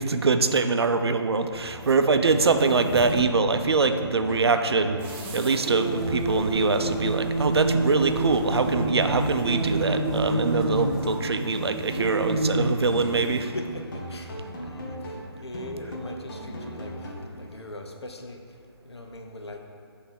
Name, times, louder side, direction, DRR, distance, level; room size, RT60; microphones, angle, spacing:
voice 1, 0.0-13.5, right 4 dB, 70° right, 7 dB, 0.5 m, -24 dB
sound 1, 1.5-17.5, equal, 50° left, 1.2 m, -38 dB
sound 2, 1.8-2.0 2.5-3.3 5.0-13.4, right 2 dB, 30° right, 0.9 m, -29 dB
sound 3, 6.0-14.5, equal, ahead, 0.6 m, -40 dB
voice 2, 13.5-19.6, left 1 dB, 75° left, 3 dB, 0.9 m, -41 dB
7.1 x 3.4 x 5.5 m, 2.5 s
figure-of-eight pair, 150°, 14 cm